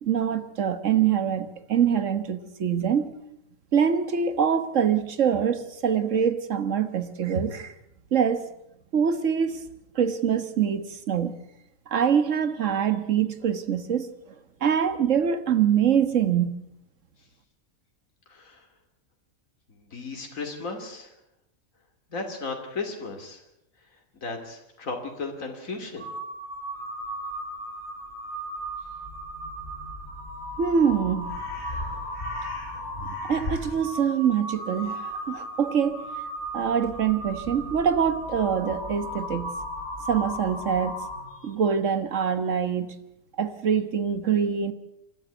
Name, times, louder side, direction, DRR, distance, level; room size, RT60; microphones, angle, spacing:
voice 1, 0.0-3.1 3.7-7.7 8.1-8.4 8.9-9.7 9.9-11.3 11.9-14.1 14.6-16.5 30.6-31.3 33.0-36.1 36.5-39.5 40.1-41.1 41.4-42.9 43.4-44.7, right 7 dB, 65° right, 1.7 m, -24 dB
voice 2, 19.9-21.1 22.1-23.4 24.2-26.1, left 3 dB, 70° left, 3.0 m, -35 dB
Crow, 26.0-41.5, equal, 50° left, 8.3 m, -35 dB
28.0 x 12.5 x 8.0 m
omnidirectional pair, 1.4 m